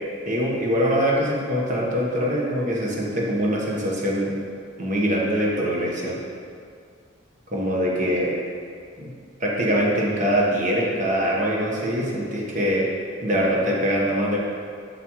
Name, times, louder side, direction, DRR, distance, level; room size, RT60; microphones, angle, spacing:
voice 1, 0.2-4.4 4.8-6.2 7.5-8.3 9.0-9.1 9.4-12.9 13.2-14.4, equal, 45° right, -4 dB, 1.2 m, -23 dB
7.4 x 7.0 x 3.1 m, 2.2 s
head